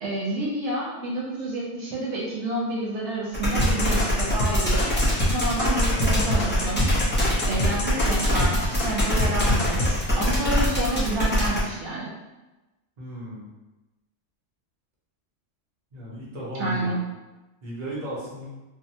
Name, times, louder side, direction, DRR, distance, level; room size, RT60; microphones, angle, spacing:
voice 1, 0.0-4.9 5.3-7.0 7.4-12.1 16.6-17.0, right 1 dB, 70° right, -5 dB, 0.9 m, -29 dB
sound 1, 3.3-11.6, left 1 dB, 15° left, 0.4 m, -24 dB
sound 2, 3.6-8.5 8.8-9.9, left 1 dB, 80° left, 1.1 m, -26 dB
voice 2, 13.0-13.5 15.9-17.0 17.6-18.5, right 1 dB, 40° right, -6 dB, 0.8 m, -36 dB
3.4 x 2.1 x 2.7 m, 1.1 s
omnidirectional pair, 1.3 m